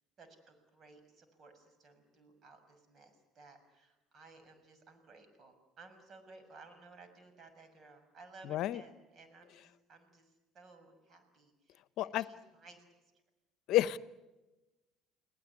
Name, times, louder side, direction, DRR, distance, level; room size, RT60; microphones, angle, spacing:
voice 1, 0.2-13.1, right 3 dB, 45° right, 8 dB, 6.5 m, -58 dB
voice 2, 8.4-8.8 12.0-12.2 13.7-14.0, left 15 dB, 65° left, 17 dB, 0.9 m, -30 dB
30.0 x 19.0 x 9.6 m, 1.1 s
supercardioid pair, 75°, 0 cm